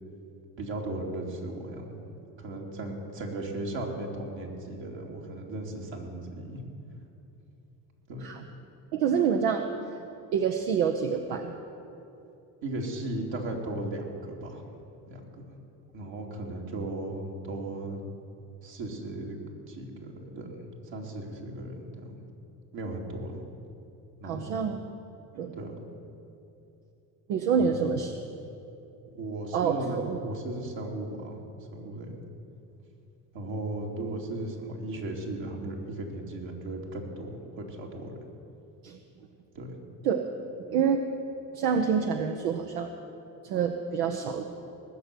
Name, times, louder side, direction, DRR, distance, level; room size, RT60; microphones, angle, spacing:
voice 1, 0.6-2.0 2.4-6.6 8.1-8.3 12.6-14.6 15.0-15.5 15.9-18.0 18.6-19.4 19.7-22.2 22.7-23.4 24.2-24.5 25.5-25.8 27.6-27.9 29.1-31.4 31.7-32.2 33.3-38.2 39.5-39.7, right 2 dB, 65° right, 0 dB, 2.8 m, -36 dB
voice 2, 8.9-9.7 10.3-11.5 24.2-24.8 25.4-25.6 27.3-28.1 29.5-30.2 38.8-39.0 40.0-40.3 40.7-41.0 41.5-42.9 43.4-44.4, right 6 dB, 85° right, 5 dB, 0.9 m, -27 dB
19.0 x 6.9 x 9.3 m, 2.8 s
hypercardioid pair, 65°, 48 cm